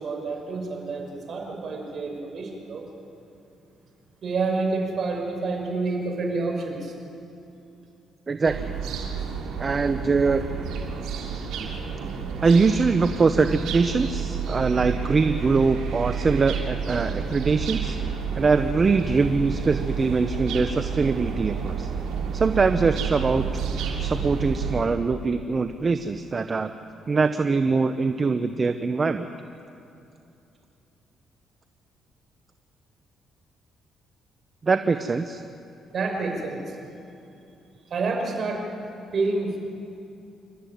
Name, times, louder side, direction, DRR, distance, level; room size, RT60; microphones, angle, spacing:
voice 1, 0.0-2.8 4.2-7.0 35.9-36.8 37.9-38.6 39.1-39.6, right 3 dB, 50° right, 1 dB, 5.8 m, -28 dB
voice 2, 8.3-8.7 9.6-10.4 11.6-11.7 12.4-18.0 18.3-21.9 22.3-23.6 24.0-26.7 27.1-29.3 34.6-35.4, right 4 dB, 35° right, 9 dB, 0.8 m, -23 dB
sound 1, 8.4-24.8, right 6 dB, 85° right, 3.2 m, -30 dB
28.0 x 13.0 x 9.4 m, 2.7 s
cardioid pair, 100°, 0 cm